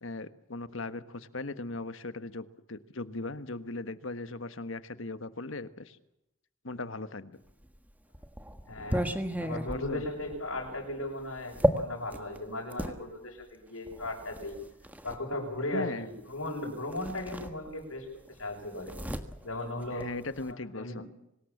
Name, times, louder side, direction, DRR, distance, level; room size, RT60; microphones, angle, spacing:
voice 1, 0.0-6.0 6.6-7.4 9.7-10.1 15.7-16.1 19.9-21.1, left 2 dB, 70° left, 12 dB, 1.4 m, -38 dB
sound 1, 7.6-13.0 13.9-15.2 16.4-16.6 16.9-18.0 18.3-20.5, equal, 10° right, 1.5 m, -34 dB
voice 2, 8.7-14.6 15.0-18.9 19.4-20.1 20.5-21.0, left 1 dB, 85° left, -4 dB, 6.8 m, -37 dB
25.0 x 20.0 x 7.3 m, 0.86 s
head